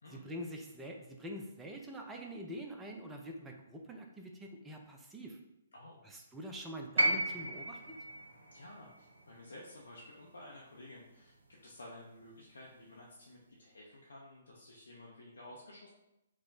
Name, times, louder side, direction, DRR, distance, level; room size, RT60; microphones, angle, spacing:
voice 1, 0.1-5.4 6.0-7.8, equal, 10° right, 2 dB, 0.5 m, -45 dB
sound 1, 7.0-11.1 12.3-12.4, right 1 dB, 70° right, 0.6 m, -35 dB
voice 2, 8.5-15.9, left 1 dB, 75° left, -3 dB, 0.7 m, -53 dB
4.7 x 2.1 x 3.9 m, 0.89 s
figure-of-eight pair, 130°, 0 cm